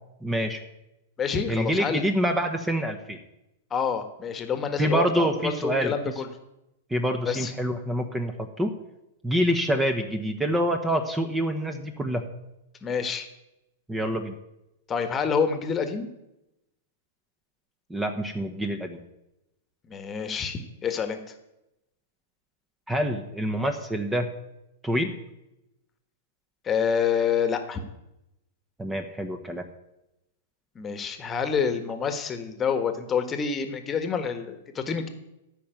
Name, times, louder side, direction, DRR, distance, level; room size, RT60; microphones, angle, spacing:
voice 1, 0.2-0.6 1.5-3.2 4.8-5.9 6.9-8.7 9.2-12.2 13.9-14.3 17.9-19.0 22.9-24.3 24.8-25.1 28.8-29.6, equal, 10° right, 7 dB, 1.3 m, -26 dB
voice 2, 1.2-2.0 3.7-6.3 7.2-7.5 12.8-13.3 14.9-16.1 19.9-21.2 26.6-27.8 30.7-35.1, left 6 dB, 20° left, 8 dB, 1.5 m, -27 dB
13.5 x 6.0 x 9.3 m, 0.90 s
figure-of-eight pair, 100°, 0 cm